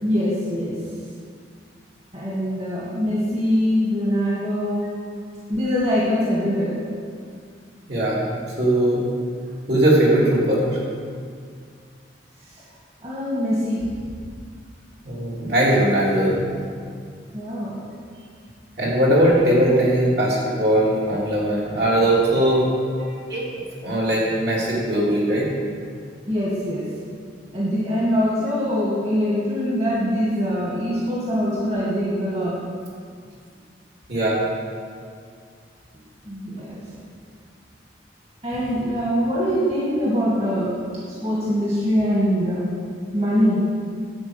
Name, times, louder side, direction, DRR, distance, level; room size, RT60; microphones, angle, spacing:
voice 1, 0.0-0.8 2.1-4.9 5.5-6.8 13.0-13.9 17.3-17.8 26.3-26.9 27.5-32.5 35.0-35.1 36.2-36.8 38.4-40.7 41.2-42.6 43.1-43.6, equal, 35° right, -7 dB, 2.0 m, -23 dB
voice 2, 7.9-8.3 8.6-9.1 9.7-10.8 15.0-16.5 18.8-22.6 23.0-23.5 23.8-25.5 34.1-34.4, right 1 dB, 60° right, -6 dB, 3.0 m, -19 dB
11.0 x 4.8 x 8.0 m, 2.2 s
head